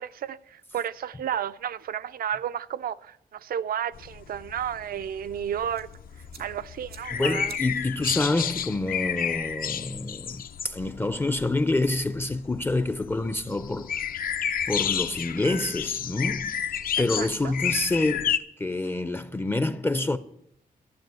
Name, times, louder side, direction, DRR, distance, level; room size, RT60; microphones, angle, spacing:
voice 1, 0.0-5.9 6.4-7.6 17.2-17.5, right 9 dB, 70° right, 0.5 m, -32 dB
sound 1, 3.9-18.4, left 8 dB, 65° left, 0.6 m, -31 dB
sound 2, 5.7-12.2, right 7 dB, 90° right, 2.1 m, -54 dB
voice 2, 7.1-13.9 14.7-16.6 17.0-20.2, left 2 dB, 15° left, 0.5 m, -27 dB
12.0 x 7.5 x 9.2 m
wide cardioid pair, 145°, 16 cm